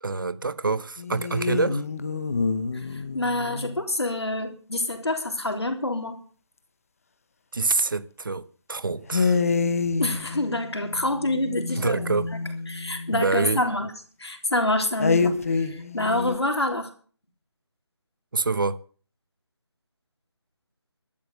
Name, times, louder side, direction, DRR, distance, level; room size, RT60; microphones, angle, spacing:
voice 1, 0.0-1.8 7.5-9.4 11.7-12.3 13.1-13.6 18.3-18.8, right 3 dB, 50° right, 1.0 m, -26 dB
sound 1, 1.0-3.8 9.1-13.5 15.0-16.4, left 4 dB, 30° left, 1.0 m, -27 dB
voice 2, 3.1-6.2 10.0-11.9 12.7-13.9 14.2-16.9, left 2 dB, 65° left, 3.6 m, -27 dB
12.5 x 10.0 x 7.9 m
figure-of-eight pair, 155°, 15 cm